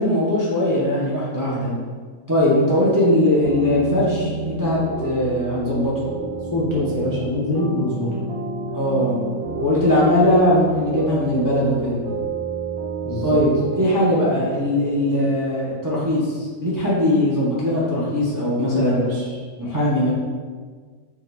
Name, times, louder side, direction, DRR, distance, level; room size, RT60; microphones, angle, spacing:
voice 1, 0.0-1.7 2.3-5.9 8.7-9.1 9.6-12.0 13.2-13.5 13.8-19.0 19.6-20.1, left 1 dB, 20° right, -7 dB, 0.5 m, -20 dB
sound 1, 3.4-15.2, right 3 dB, 80° right, 1.3 m, -30 dB
voice 2, 6.5-8.2 13.0-13.4 18.6-19.4, left 1 dB, 45° left, -7 dB, 0.3 m, -24 dB
4.7 x 2.5 x 3.3 m, 1.5 s
omnidirectional pair, 1.5 m